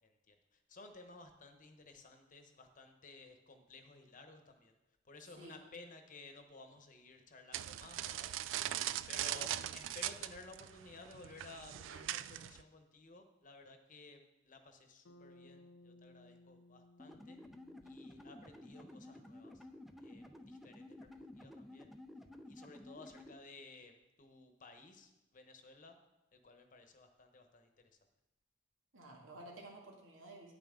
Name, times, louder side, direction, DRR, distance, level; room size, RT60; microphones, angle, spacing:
voice 1, 0.0-4.8 5.0-8.3 9.1-14.2 14.4-17.4 17.8-19.7 20.0-21.9 22.5-26.0 26.3-27.9, left 3 dB, 45° left, 6 dB, 1.0 m, -56 dB
voice 2, 5.3-5.7 9.1-9.5 28.9-30.5, right 2 dB, 85° right, -1 dB, 2.1 m, -53 dB
sound 1, 7.5-12.6, right 12 dB, 70° right, 0.3 m, -40 dB
Bass guitar, 15.0-19.4, left 1 dB, 90° left, 0.5 m, -62 dB
sound 2, 17.0-23.3, left 1 dB, ahead, 0.5 m, -53 dB
9.7 x 8.9 x 3.7 m, 0.97 s
head